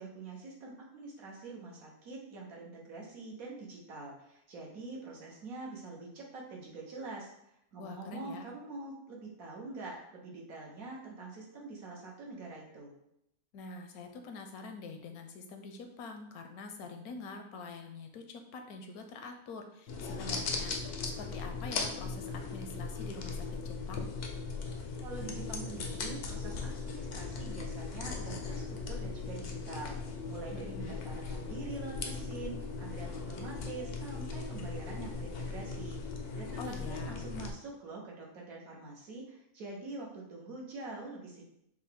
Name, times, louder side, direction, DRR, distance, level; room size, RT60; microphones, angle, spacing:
voice 1, 0.0-7.3 7.7-12.9 25.0-41.4, right 3 dB, 70° right, -2 dB, 1.4 m, -45 dB
voice 2, 7.8-8.5 13.5-24.1 30.5-30.9 36.6-37.3, left 4 dB, 80° left, 5 dB, 1.1 m, -45 dB
sound 1, 19.9-37.5, left 4 dB, 65° left, 0.6 m, -38 dB
5.4 x 2.2 x 3.4 m, 0.77 s
omnidirectional pair, 1.6 m